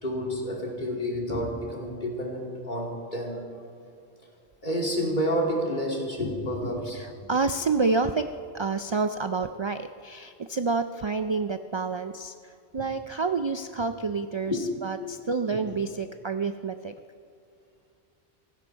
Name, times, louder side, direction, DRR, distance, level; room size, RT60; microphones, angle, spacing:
voice 1, 0.0-3.4 4.6-7.0 14.5-14.6 15.5-15.6, equal, 45° left, -1 dB, 2.9 m, -29 dB
voice 2, 6.9-8.3 8.5-16.9, right 4 dB, 45° right, 9 dB, 0.3 m, -29 dB
17.0 x 16.0 x 4.6 m, 2.3 s
omnidirectional pair, 1.1 m